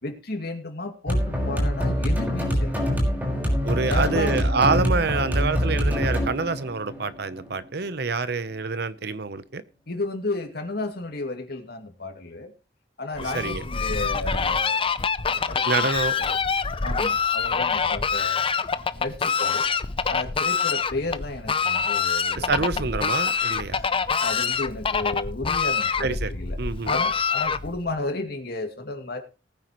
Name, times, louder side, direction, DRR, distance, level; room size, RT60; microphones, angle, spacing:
voice 1, 0.0-2.8 3.9-4.4 9.9-12.5 13.0-15.0 15.2-15.6 16.2-16.4 16.8-18.6 18.9-19.7 20.1-22.9 23.7-23.9 24.2-26.6 26.8-29.2, left 2 dB, 60° left, 5 dB, 2.4 m, -33 dB
sound 1, 1.1-8.0, equal, 10° right, 5.6 m, -25 dB
voice 2, 3.6-9.6 13.2-13.6 15.6-16.1 22.3-23.8 26.0-26.3 26.6-26.9, right 4 dB, 65° right, 14 dB, 0.9 m, -26 dB
Fowl, 13.1-27.9, left 6 dB, 30° left, 0.6 m, -25 dB
19.5 x 9.2 x 3.1 m, 0.30 s
head